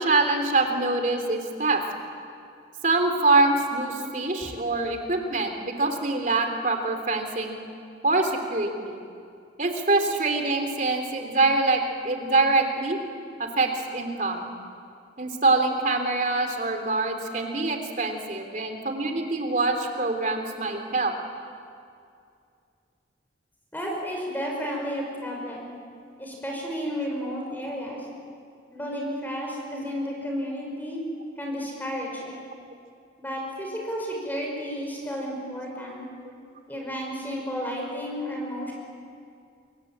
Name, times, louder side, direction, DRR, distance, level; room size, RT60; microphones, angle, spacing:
voice 1, 0.0-1.8 2.8-7.6 8.0-9.0 9.6-13.0 13.4-14.5 15.2-21.1, right 3 dB, 45° right, 5 dB, 3.2 m, -24 dB
voice 2, 23.7-25.7 26.2-28.1 28.7-31.0 31.4-32.4 33.2-36.0 36.7-38.7, equal, 10° left, -1 dB, 5.3 m, -32 dB
27.5 x 23.5 x 8.7 m, 2.4 s
head